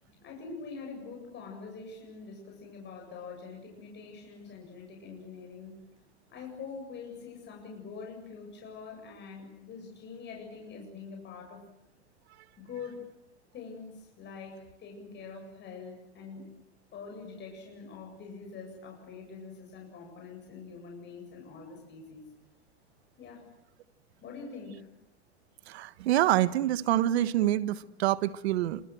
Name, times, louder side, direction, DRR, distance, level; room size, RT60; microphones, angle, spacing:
voice 1, 0.1-5.8 6.3-11.6 12.6-13.1 13.5-16.5 16.9-22.3 23.2-23.5 24.2-24.9, left 5 dB, 35° left, 7.7 m, -44 dB
voice 2, 25.7-28.8, right 13 dB, 75° right, 1.5 m, -26 dB
28.5 x 26.0 x 7.8 m
hypercardioid pair, 115°, 33 cm